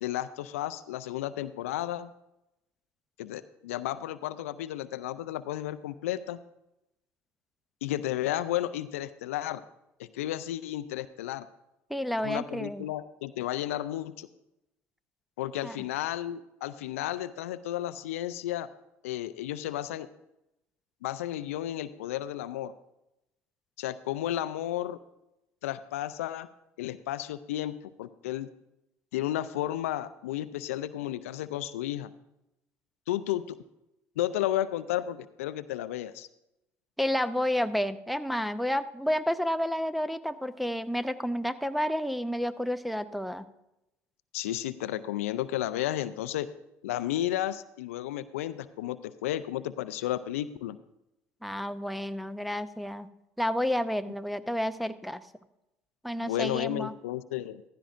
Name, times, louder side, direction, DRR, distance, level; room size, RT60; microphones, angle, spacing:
voice 1, 0.0-2.1 3.2-6.4 7.8-9.6 10.0-11.5 12.2-14.3 15.4-18.7 19.0-20.1 21.0-22.7 23.8-25.0 25.6-26.5 26.8-28.5 29.1-32.1 33.1-33.6 34.2-36.3 44.3-46.5 46.8-50.8 56.2-57.6, left 13 dB, 80° left, 15 dB, 0.4 m, -33 dB
voice 2, 11.9-12.8 15.6-15.8 37.0-43.4 51.4-53.1 53.4-55.2 56.0-56.9, equal, ahead, 9 dB, 0.6 m, -30 dB
15.0 x 12.5 x 2.5 m, 0.89 s
hypercardioid pair, 65°, 7 cm